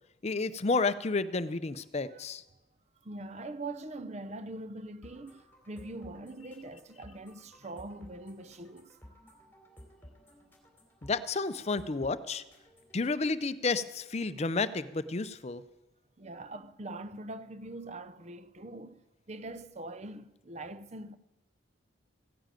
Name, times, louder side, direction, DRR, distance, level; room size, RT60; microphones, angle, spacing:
voice 1, 0.2-2.4 11.0-12.4 12.9-15.6, left 3 dB, 35° left, 0.5 m, -31 dB
voice 2, 3.0-9.4 16.2-19.0 19.3-21.2, right 2 dB, 35° right, 0.7 m, -43 dB
sound 1, 5.0-13.0, equal, 10° left, 3.1 m, -55 dB
15.5 x 10.0 x 9.0 m
head